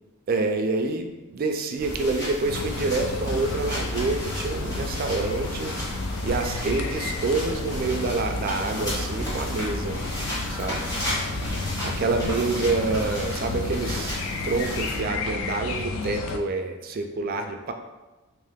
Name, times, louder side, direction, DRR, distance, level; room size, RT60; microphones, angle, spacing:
voice 1, 0.3-5.8 6.2-10.0 10.5-10.9 11.8-17.7, right 3 dB, 45° right, 5 dB, 0.3 m, -27 dB
sound 1, 1.8-15.0, equal, 15° left, 1.2 m, -34 dB
sound 2, 2.4-16.4, left 3 dB, 80° left, 0.4 m, -32 dB
3.0 x 2.8 x 3.4 m, 1.1 s
head